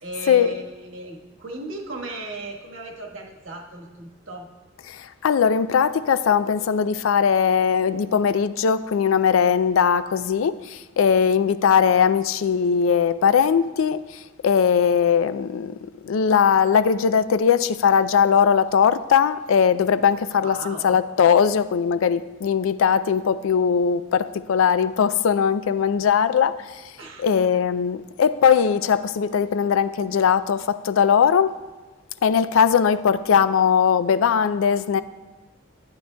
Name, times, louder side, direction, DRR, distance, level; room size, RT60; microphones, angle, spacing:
voice 1, 0.0-4.5 20.4-21.0 27.0-27.3, right 1 dB, 75° right, 1.3 m, -36 dB
voice 2, 4.9-14.0 14.4-26.8 27.2-31.6 32.2-35.0, left 7 dB, 85° left, 0.4 m, -20 dB
12.0 x 9.4 x 2.2 m
head